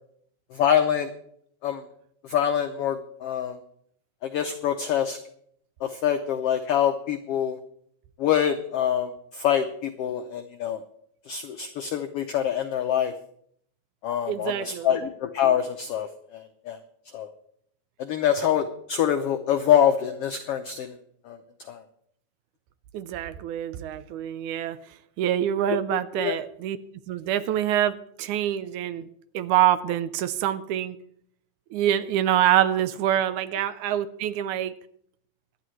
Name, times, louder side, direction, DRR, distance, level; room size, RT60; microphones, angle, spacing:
voice 1, 0.5-1.1 1.6-1.8 2.2-3.6 4.2-5.2 5.8-7.6 8.2-10.8 11.3-13.1 14.0-16.8 17.1-17.3 18.0-21.0 21.2-21.4 21.7-21.8 25.7-26.4, left 9 dB, 90° left, 7 dB, 1.3 m, -25 dB
voice 2, 14.3-15.0 22.9-24.8 25.2-26.8 27.1-29.1 29.3-31.0 31.7-34.7, right 11 dB, 80° right, 12 dB, 2.1 m, -25 dB
25.5 x 9.6 x 3.2 m, 0.67 s
omnidirectional pair, 3.6 m